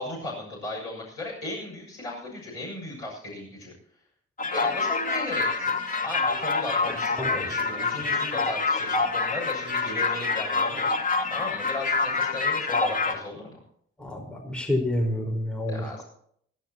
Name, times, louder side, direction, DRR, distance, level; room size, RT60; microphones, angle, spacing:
voice 1, 0.0-3.7 4.5-10.9 11.3-13.6 15.7-16.0, left 2 dB, 75° left, -3 dB, 6.9 m, -36 dB
sound 1, 4.4-13.1, left 4 dB, 25° left, 2.7 m, -26 dB
voice 2, 7.2-7.5 14.0-16.0, left 1 dB, 5° left, 1 dB, 5.0 m, -29 dB
26.0 x 12.0 x 3.0 m, 0.64 s
figure-of-eight pair, 40°, 33 cm